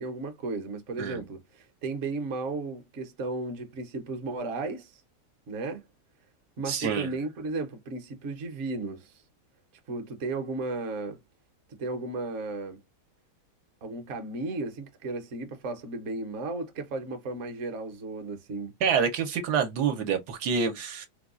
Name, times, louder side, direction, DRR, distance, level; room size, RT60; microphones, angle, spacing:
voice 1, 0.0-4.9 5.5-5.8 6.6-9.1 9.9-11.2 11.8-12.8 13.8-18.7, right 3 dB, 55° right, 1.0 m, -34 dB
voice 2, 6.7-7.1 18.8-21.1, right 6 dB, 75° right, 1.3 m, -27 dB
4.5 x 2.3 x 2.3 m
omnidirectional pair, 1.8 m